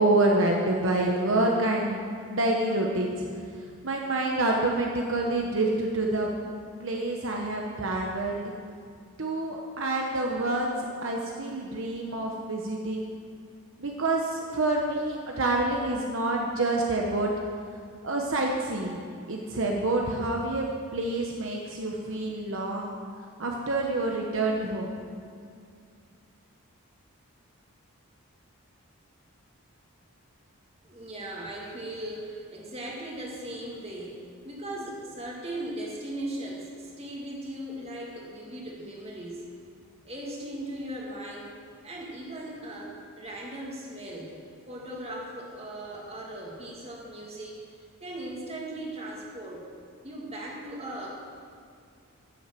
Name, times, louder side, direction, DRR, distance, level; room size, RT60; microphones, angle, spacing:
voice 1, 0.0-2.0 2.3-3.3 3.8-6.3 6.8-8.5 9.2-10.7 11.0-13.1 13.8-17.3 18.0-19.0 19.3-22.9 23.4-24.9, right 2 dB, 60° right, 0 dB, 1.1 m, -27 dB
voice 2, 30.9-34.1 34.4-36.7 37.0-39.4 40.1-41.5 41.8-44.3 44.7-47.6 48.0-49.6 50.0-51.1, right 1 dB, 25° right, -3 dB, 2.3 m, -38 dB
13.5 x 7.7 x 7.7 m, 2.3 s
head